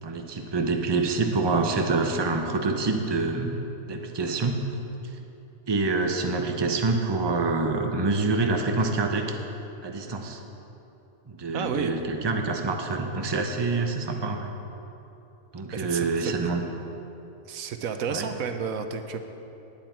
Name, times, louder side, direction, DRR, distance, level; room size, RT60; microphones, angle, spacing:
voice 1, 0.0-4.6 5.7-9.4 9.8-10.4 11.3-14.5 15.5-16.6 18.1-18.3, right 3 dB, 25° right, 3 dB, 0.8 m, -26 dB
voice 2, 11.5-12.0 15.7-16.3 17.4-19.2, right 6 dB, 80° right, 7 dB, 1.2 m, -31 dB
19.0 x 9.1 x 4.5 m, 3.0 s
omnidirectional pair, 1.4 m